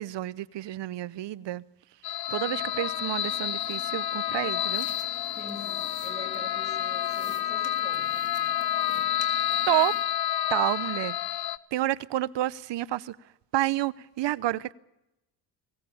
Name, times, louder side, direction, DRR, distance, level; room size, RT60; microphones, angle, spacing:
voice 1, 0.0-1.6 2.3-4.9 9.7-10.0 10.5-11.2 11.7-13.2 13.5-14.7, right 14 dB, 60° right, 0.8 m, -29 dB
sound 1, 2.0-11.6, left 11 dB, 50° left, 0.8 m, -29 dB
sound 2, 2.3-10.0, left 5 dB, 30° left, 3.5 m, -49 dB
voice 2, 5.3-8.6, left 1 dB, 15° right, 7.3 m, -45 dB
22.0 x 18.5 x 7.1 m
supercardioid pair, 80°, 50 cm